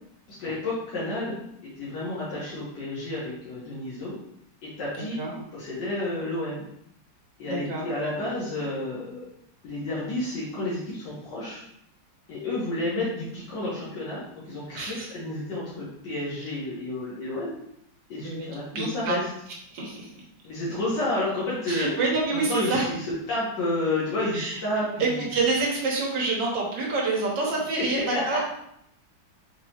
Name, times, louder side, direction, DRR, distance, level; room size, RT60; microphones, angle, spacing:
voice 1, 0.4-1.4 1.8-4.1 4.6-5.2 5.5-6.6 7.4-9.2 9.6-11.6 12.3-17.5 18.1-19.2 20.4-21.9 22.5-23.0 23.3-25.3 28.0-28.4, left 2 dB, 80° left, -8 dB, 1.7 m, -30 dB
voice 2, 4.9-5.4 7.4-7.9 14.7-15.1 18.2-18.5 18.7-19.2 19.7-20.1 21.7-22.9 24.3-28.4, right 3 dB, 75° right, -2 dB, 1.6 m, -27 dB
4.7 x 2.8 x 2.8 m, 0.74 s
omnidirectional pair, 1.9 m